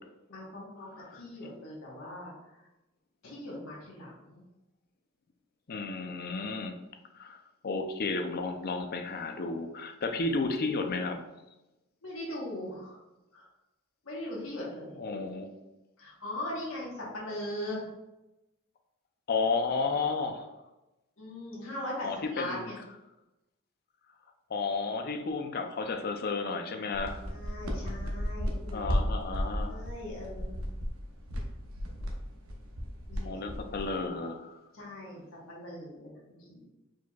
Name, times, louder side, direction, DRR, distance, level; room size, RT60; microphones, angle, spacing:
voice 1, 0.3-2.6 3.2-4.4 12.0-13.0 13.3-13.5 14.0-15.0 16.0-17.9 21.2-22.8 27.3-29.0 29.7-30.6 33.1-33.4 34.7-36.7, left 1 dB, 70° left, -5 dB, 1.2 m, -40 dB
voice 2, 5.7-6.8 7.1-11.2 15.0-15.5 19.3-20.5 22.0-22.7 24.5-27.2 28.7-29.8 33.2-34.6, left 3 dB, 50° left, 5 dB, 0.5 m, -32 dB
sound 1, 26.9-34.1, equal, 80° right, 0.8 m, -34 dB
4.6 x 4.3 x 2.3 m, 0.99 s
head